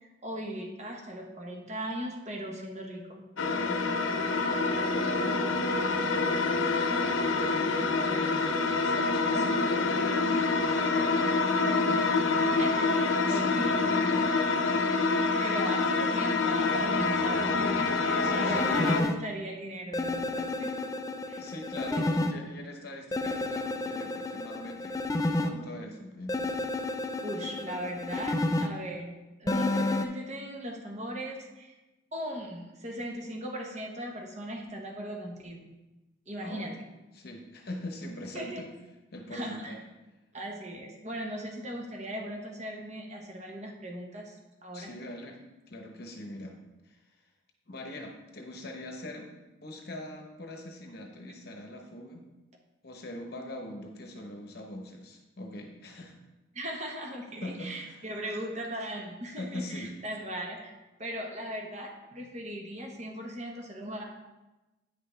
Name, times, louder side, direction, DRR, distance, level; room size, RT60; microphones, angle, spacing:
voice 1, 0.0-3.2 3.6-4.0 4.8-5.4 8.0-8.3 9.3-9.5 12.5-13.7 15.4-20.7 21.3-21.4 21.9-22.0 27.2-31.8 32.1-35.6 36.3-36.7 38.3-38.6 39.3-39.7 40.3-44.9 56.5-60.7 61.0-64.0, equal, 35° right, 0 dB, 1.2 m, -38 dB
sound 1, 3.4-19.0, left 3 dB, 80° left, 0.7 m, -26 dB
voice 2, 8.8-12.1 13.3-14.9 18.2-18.8 21.4-25.0 25.4-26.5 36.4-36.8 37.1-38.7 39.1-39.8 44.7-45.4 45.7-46.6 46.8-47.0 47.7-49.3 49.6-52.2 52.8-56.1 57.4-58.0 59.4-59.9, left 1 dB, 50° left, 2 dB, 0.9 m, -42 dB
sound 2, 18.2-19.1 19.9-22.3 23.1-25.5 26.3-28.7 29.5-30.1, left 2 dB, 15° left, 0.3 m, -31 dB
9.5 x 5.7 x 3.3 m, 1.0 s
head